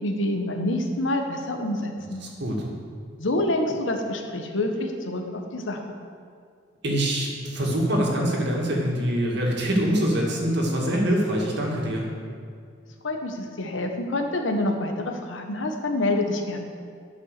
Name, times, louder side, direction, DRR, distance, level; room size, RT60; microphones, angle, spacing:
voice 1, 0.0-2.2 3.2-5.8 13.0-16.6, left 1 dB, 75° left, 4 dB, 1.2 m, -27 dB
voice 2, 2.2-2.8 6.8-12.1, right 1 dB, 60° right, -1 dB, 2.0 m, -24 dB
11.5 x 5.5 x 6.6 m, 2.2 s
head